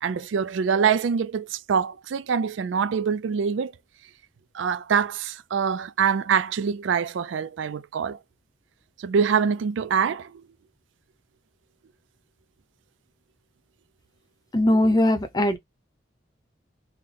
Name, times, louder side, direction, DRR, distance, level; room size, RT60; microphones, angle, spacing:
voice 1, 0.0-3.7 4.5-8.2 9.0-10.4 14.7-14.8, right 6 dB, 90° right, 0.4 m, -25 dB
voice 2, 14.5-15.6, left 1 dB, 20° left, 0.6 m, -20 dB
3.7 x 2.1 x 3.2 m
head